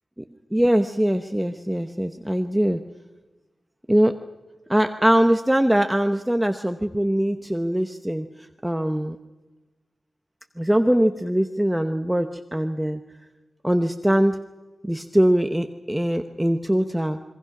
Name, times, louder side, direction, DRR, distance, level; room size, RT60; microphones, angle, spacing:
voice 1, 0.5-2.8 3.9-4.1 4.7-8.3 8.6-9.2 10.6-13.0 13.6-14.4 14.8-17.2, right 1 dB, 5° right, 7 dB, 0.9 m, -22 dB
26.5 x 22.5 x 6.0 m, 1.1 s
wide cardioid pair, 90°, 0 cm